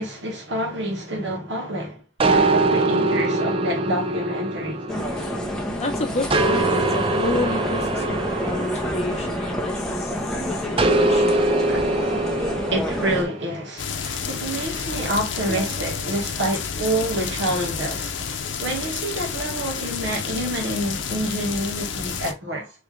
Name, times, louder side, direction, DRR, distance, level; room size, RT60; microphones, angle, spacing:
voice 1, 0.0-4.8 10.3-10.7 11.7-12.0 12.7-18.1 18.6-22.7, right 1 dB, 75° right, 1.5 m, -28 dB
sound 1, 2.2-5.8 6.3-10.0 10.8-13.4, right 2 dB, 30° right, 0.5 m, -23 dB
sound 2, 4.9-13.2, equal, 5° left, 0.8 m, -28 dB
voice 2, 5.8-11.4, left 2 dB, 35° left, 0.9 m, -30 dB
sound 3, 13.8-22.3, left 6 dB, 85° left, 0.6 m, -30 dB
3.7 x 3.1 x 3.2 m
head